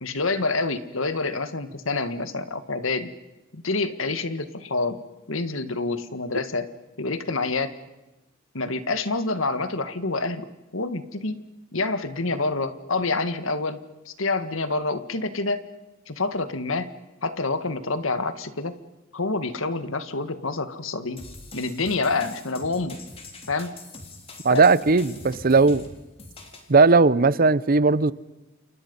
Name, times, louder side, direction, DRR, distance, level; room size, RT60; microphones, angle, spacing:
voice 1, 0.0-3.1 3.5-5.0 5.3-6.7 7.0-7.7 8.5-11.4 11.7-15.6 16.1-16.9 17.2-18.8 19.1-21.2 21.5-23.0 23.5-23.7 24.5-24.6, left 3 dB, 80° left, 1.8 m, -27 dB
sound 1, 21.2-26.7, left 2 dB, 30° left, 3.5 m, -43 dB
voice 2, 24.4-25.8 26.7-28.1, right 4 dB, 45° right, 0.8 m, -17 dB
28.5 x 28.5 x 5.5 m
head